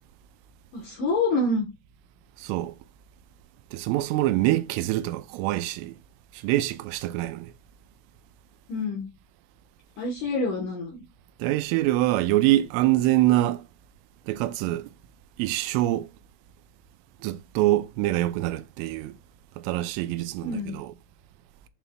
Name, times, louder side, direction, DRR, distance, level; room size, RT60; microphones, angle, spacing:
voice 1, 0.7-1.7 8.7-9.1 10.0-11.1 20.4-20.8, left 2 dB, 70° left, 2.0 m, -27 dB
voice 2, 2.4-2.7 3.7-6.0 6.3-7.5 11.4-13.7 14.3-14.9 15.4-16.1 17.2-19.1 19.6-20.9, right 16 dB, 90° right, 3.2 m, -25 dB
8.0 x 5.8 x 2.3 m
omnidirectional pair, 5.6 m